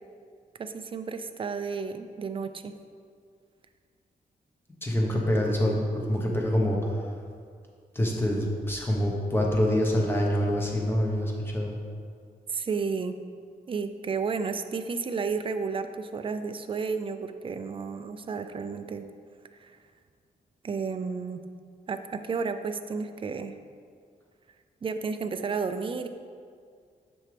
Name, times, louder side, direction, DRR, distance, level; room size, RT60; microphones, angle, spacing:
voice 1, 0.6-2.7 5.1-5.2 12.5-13.2 13.7-19.1 19.6-19.7 20.6-21.4 21.9-23.5 24.8-26.1, right 5 dB, 35° right, 9 dB, 0.4 m, -32 dB
voice 2, 4.8-7.0 7.9-11.7, equal, 15° left, -2 dB, 1.1 m, -26 dB
7.3 x 6.1 x 3.3 m, 2.2 s
wide cardioid pair, 135°, 16 cm